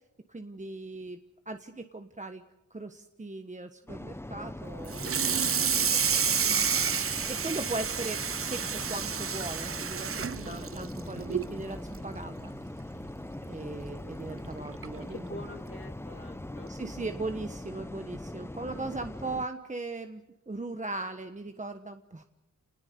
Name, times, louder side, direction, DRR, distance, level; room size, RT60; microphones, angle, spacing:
voice 1, 0.3-1.2 1.5-2.4 2.7-5.1 6.3-6.7 7.3-12.5 13.4-15.4 16.7-22.2, right 2 dB, 25° right, 7 dB, 1.3 m, -38 dB
sound 1, 3.9-19.5, left 1 dB, 10° left, 0.8 m, -41 dB
Water tap faucet / Sink (filling or washing), 4.9-11.5 11.9-12.2 12.5-12.6 13.0-13.1 14.3-14.4 14.8-15.0, right 6 dB, 45° right, 0.7 m, -29 dB
voice 2, 5.0-6.2 15.1-16.7, left 2 dB, 45° left, 0 dB, 3.7 m, -46 dB
29.0 x 20.0 x 6.8 m, 1.0 s
wide cardioid pair, 85°, 30 cm